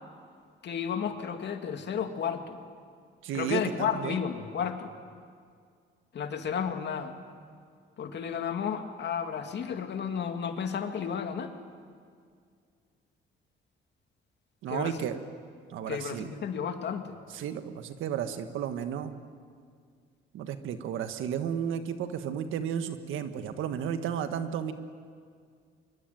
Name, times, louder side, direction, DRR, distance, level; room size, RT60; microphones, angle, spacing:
voice 1, 0.6-2.6 3.3-4.9 6.1-7.1 8.0-11.5 14.7-15.1 15.9-17.2, left 7 dB, 60° left, 6 dB, 2.5 m, -32 dB
voice 2, 3.2-4.2 14.6-15.2 15.7-16.3 17.3-19.2 20.3-24.7, right 8 dB, 85° right, 9 dB, 1.6 m, -33 dB
24.5 x 23.5 x 9.4 m, 2.1 s
cardioid pair, 90°, 20 cm